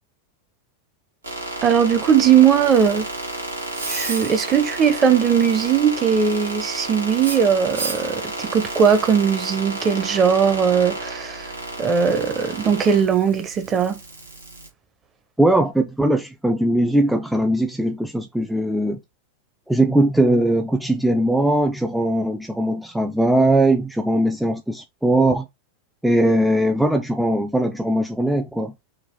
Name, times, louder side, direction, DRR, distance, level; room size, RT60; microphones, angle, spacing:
sound 1, 1.2-14.7, right 2 dB, 75° right, 1.5 m, -31 dB
voice 1, 1.6-3.1 3.9-11.5 11.8-14.0, right 7 dB, 25° right, 0.8 m, -19 dB
voice 2, 15.4-19.0 19.7-25.5 26.0-28.7, right 1 dB, ahead, 0.4 m, -20 dB
3.9 x 2.4 x 4.6 m
figure-of-eight pair, 90°, 0 cm